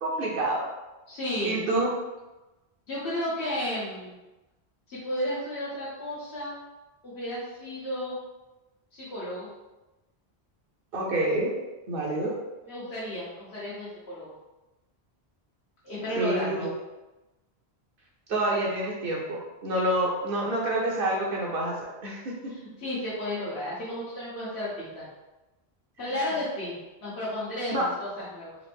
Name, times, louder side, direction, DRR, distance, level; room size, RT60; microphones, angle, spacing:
voice 1, 0.0-0.7 1.4-1.9 10.9-11.5 11.9-12.4 16.2-16.7 18.3-22.5 27.7-27.9, right 1 dB, 65° right, -3 dB, 0.9 m, -28 dB
voice 2, 1.1-1.6 2.9-4.1 4.9-6.5 7.0-8.2 8.9-9.5 12.6-14.3 15.8-16.7 22.5-25.0 26.0-28.6, left 1 dB, 85° left, -9 dB, 1.3 m, -33 dB
4.0 x 2.5 x 3.4 m, 1.1 s
omnidirectional pair, 1.1 m